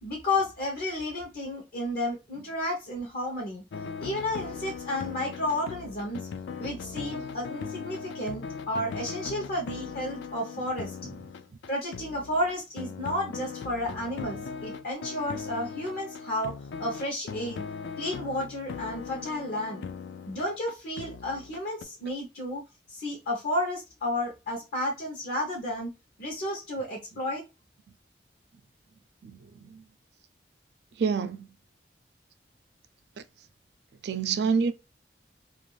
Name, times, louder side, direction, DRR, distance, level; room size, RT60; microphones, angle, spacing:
voice 1, 0.0-3.6 4.0-6.3 6.6-11.0 11.7-17.6 18.0-19.9 20.3-22.6 22.9-25.9 26.2-27.4, left 1 dB, 55° left, 0.7 m, -32 dB
sound 1, 3.7-21.8, left 5 dB, 75° left, 0.3 m, -39 dB
voice 2, 29.2-29.8 31.0-31.5 34.0-34.7, right 5 dB, 65° right, 0.4 m, -27 dB
2.5 x 2.3 x 3.0 m
head